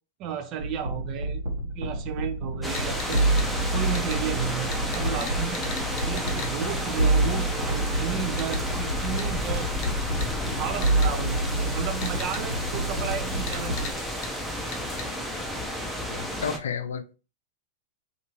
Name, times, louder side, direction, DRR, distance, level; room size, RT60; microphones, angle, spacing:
voice 1, 0.2-1.4 1.7-3.2 3.7-5.6 6.0-9.7 10.5-14.1, right 9 dB, 45° right, 0.5 m, -33 dB
sound 1, 0.6-13.9, right 2 dB, 75° right, 1.1 m, -28 dB
sound 2, 2.6-16.6, left 1 dB, ahead, 0.7 m, -31 dB
sound 3, 2.7-3.5 3.9-4.2 4.7-6.5 8.4-8.6 9.2-9.3 9.8-9.9 10.2-10.3 10.8-11.1 12.0-12.4 13.5-13.9 14.2-14.3 14.7-15.1, left 4 dB, 50° left, 0.7 m, -38 dB
voice 2, 16.1-17.1, left 7 dB, 70° left, 0.3 m, -32 dB
2.7 x 2.6 x 2.9 m
figure-of-eight pair, 95°, 0 cm